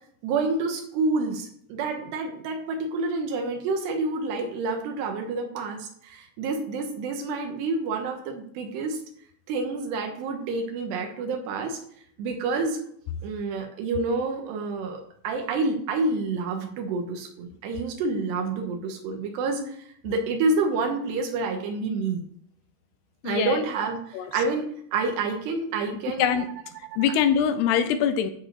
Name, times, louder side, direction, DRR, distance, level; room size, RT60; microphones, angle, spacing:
voice 1, 0.2-9.0 9.5-11.8 12.2-12.8 13.2-22.2 23.2-24.7 24.9-26.5 27.1-27.2, right 3 dB, 90° right, 3 dB, 3.3 m, -28 dB
voice 2, 23.2-23.7 24.1-24.3 26.1-26.5 27.0-28.3, left 8 dB, 80° left, 10 dB, 2.8 m, -23 dB
13.5 x 5.4 x 6.4 m, 0.66 s
omnidirectional pair, 4.8 m